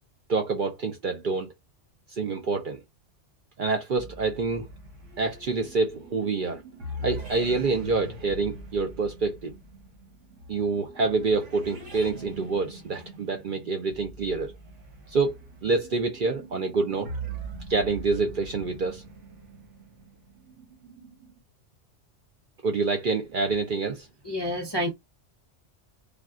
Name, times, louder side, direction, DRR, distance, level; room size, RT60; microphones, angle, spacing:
voice 1, 0.3-1.5 2.1-2.8 3.6-4.7 5.2-6.6 7.0-9.5 10.5-14.5 15.1-17.1 17.7-19.0 22.6-24.1, right 4 dB, 60° right, 0.6 m, -27 dB
sound 1, 3.9-21.4, right 2 dB, 75° right, 1.4 m, -42 dB
voice 2, 24.2-24.9, equal, 35° left, 0.4 m, -28 dB
3.4 x 2.3 x 2.3 m
omnidirectional pair, 1.2 m